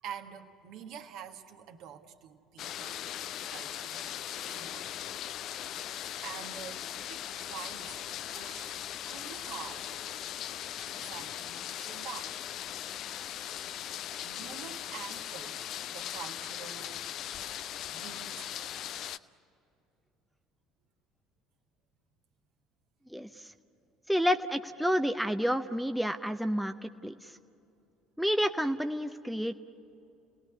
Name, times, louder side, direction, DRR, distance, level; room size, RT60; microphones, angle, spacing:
voice 1, 0.0-3.2 3.5-4.9 5.6-8.7 9.1-9.9 10.8-12.5 13.2-13.4 14.2-17.0 17.9-18.7, right 8 dB, 55° right, 5 dB, 1.5 m, -47 dB
sound 1, 2.6-19.2, left 11 dB, 50° left, 0.5 m, -39 dB
voice 2, 23.1-23.5 24.1-27.4 28.2-29.6, equal, ahead, 7 dB, 0.8 m, -30 dB
30.0 x 19.5 x 9.8 m, 2.7 s
figure-of-eight pair, 60°, 0 cm